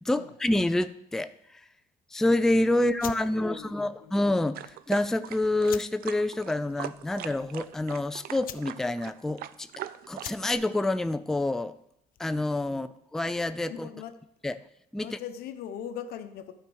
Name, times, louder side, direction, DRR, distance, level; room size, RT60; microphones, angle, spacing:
voice 1, 0.0-1.6 2.1-9.7 10.1-11.7 12.2-13.9 14.4-14.6 14.9-15.1, left 1 dB, 5° left, 12 dB, 0.3 m, -27 dB
voice 2, 2.7-4.2 12.7-12.9 13.6-14.2 15.0-16.5, left 9 dB, 85° left, 9 dB, 0.8 m, -41 dB
sound 1, 2.9-12.4, left 12 dB, 65° left, 0.5 m, -47 dB
sound 2, 4.5-10.5, right 12 dB, 70° right, 0.5 m, -40 dB
12.0 x 4.4 x 6.2 m, 0.75 s
cardioid pair, 100°, 16 cm